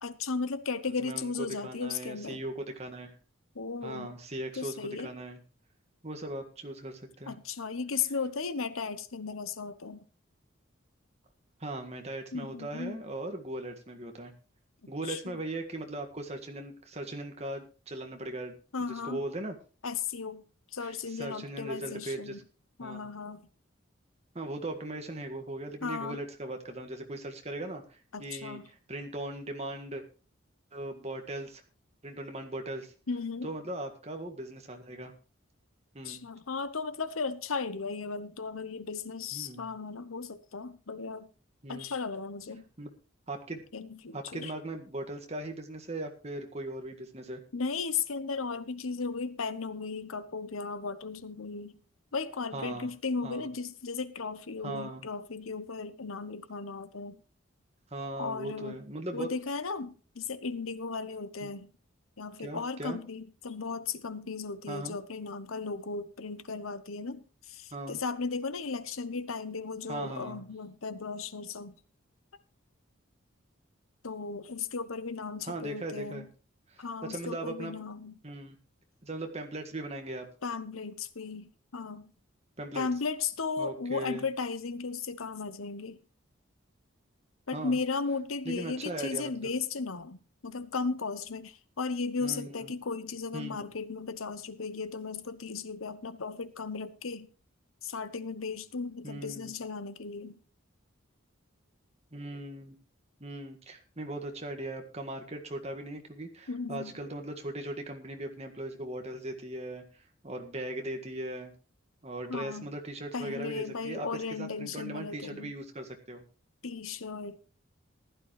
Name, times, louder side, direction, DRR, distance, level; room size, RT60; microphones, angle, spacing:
voice 1, 0.0-2.4 3.5-4.1 4.6-5.1 7.3-10.0 12.3-13.0 14.8-15.2 18.7-19.2 19.8-20.4 20.7-22.4 22.8-23.4 25.8-26.2 28.1-28.6 33.1-33.5 36.0-41.3 41.7-42.6 43.7-44.5 47.5-51.8 52.1-57.2 58.2-58.8 59.1-61.7 62.2-71.7 74.0-76.3 76.8-78.1 80.4-82.1 82.7-86.0 87.5-97.3 97.8-100.4 106.5-106.9 112.3-112.6 113.1-115.5 116.6-117.4, left 4 dB, 90° left, 1.0 m, -36 dB
voice 2, 1.0-3.1 3.8-5.4 6.0-7.4 11.6-14.3 14.9-18.6 18.8-19.5 20.8-22.4 22.8-23.1 24.4-30.0 30.7-31.6 32.0-32.9 33.4-35.1 35.9-36.2 39.3-39.7 41.6-41.9 42.8-42.9 43.3-43.6 44.1-47.4 52.5-52.9 53.2-53.5 54.6-55.1 57.9-59.3 61.4-61.5 62.4-63.0 64.7-65.0 67.7-68.0 69.9-70.5 75.4-76.3 76.7-77.7 78.2-78.6 79.0-80.3 82.6-82.9 83.6-84.2 87.5-87.8 88.5-89.3 92.2-92.7 93.3-93.6 99.0-99.5 102.1-102.8 103.2-111.5 112.0-116.2, right 1 dB, 30° right, 1.8 m, -39 dB
15.5 x 11.5 x 3.2 m
head